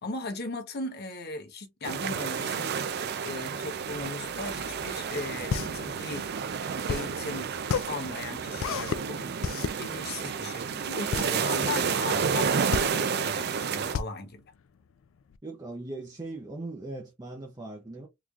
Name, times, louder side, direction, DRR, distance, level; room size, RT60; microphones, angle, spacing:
voice 1, 0.0-2.7 3.2-6.3 6.9-7.5 7.9-9.3 9.8-14.4, left 3 dB, 55° left, 0.8 m, -37 dB
sound 1, 1.8-14.0, right 6 dB, 55° right, 0.4 m, -30 dB
Car passing by / Traffic noise roadway noise, 3.5-8.6, right 2 dB, 75° right, 1.2 m, -51 dB
sound 2, 5.5-15.4, left 6 dB, 85° left, 0.4 m, -33 dB
voice 2, 15.4-18.1, right 2 dB, 20° right, 0.7 m, -39 dB
3.8 x 3.1 x 2.4 m
head